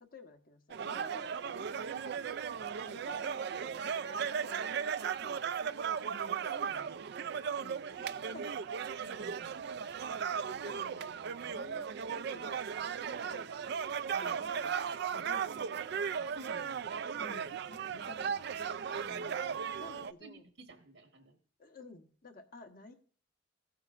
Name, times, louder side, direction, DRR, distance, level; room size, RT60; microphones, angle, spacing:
voice 1, 0.0-1.7 1.9-2.3 2.8-4.7 5.2-5.5 7.5-8.7 10.5-12.7 13.1-13.5 14.2-15.6 17.2-18.4 19.8-20.4 21.6-22.9, left 2 dB, 50° left, 5 dB, 1.2 m, -53 dB
sound 1, 0.7-20.1, right 7 dB, 55° right, 0.4 m, -36 dB
voice 2, 6.1-7.1 9.0-9.6 14.1-14.4 16.2-16.9 19.0-19.6 20.2-21.4, right 2 dB, 75° right, 4 dB, 1.3 m, -53 dB
16.0 x 9.0 x 2.5 m, 0.43 s
head